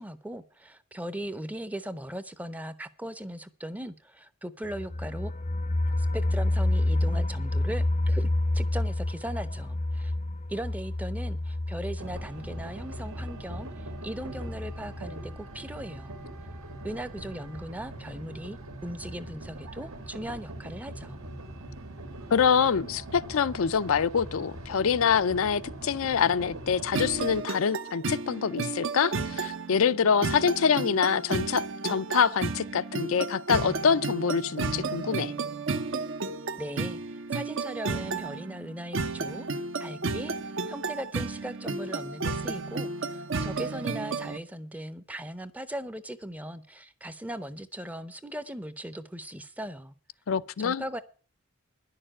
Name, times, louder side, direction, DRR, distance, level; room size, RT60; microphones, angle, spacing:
voice 1, 0.0-5.3 6.0-8.3 8.5-10.1 10.5-16.2 16.8-21.2 36.6-39.5 39.8-40.3 40.7-49.9 50.6-51.0, right 1 dB, 5° right, 0.6 m, -38 dB
sound 1, 4.6-15.3 15.7-15.8 16.1-16.2, left 1 dB, 35° left, 0.6 m, -29 dB
sound 2, 12.0-27.4, right 1 dB, 85° right, 2.0 m, -42 dB
voice 2, 22.3-35.3 50.3-50.8, left 6 dB, 80° left, 0.5 m, -25 dB
sound 3, 26.9-44.4, right 3 dB, 65° right, 0.9 m, -32 dB
10.5 x 6.8 x 8.8 m
head